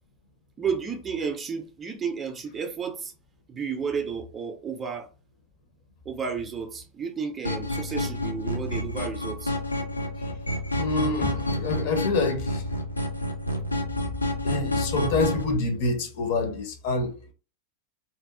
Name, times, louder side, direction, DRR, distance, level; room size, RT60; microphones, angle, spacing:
voice 1, 0.6-3.1 3.5-5.1 6.1-9.9, right 6 dB, 20° right, 0.5 m, -32 dB
sound 1, 7.4-15.4, left 1 dB, 90° left, 0.5 m, -29 dB
voice 2, 10.8-12.6 14.4-17.3, left 3 dB, 50° left, 0.7 m, -27 dB
2.7 x 2.2 x 2.4 m
figure-of-eight pair, 90°, 0 cm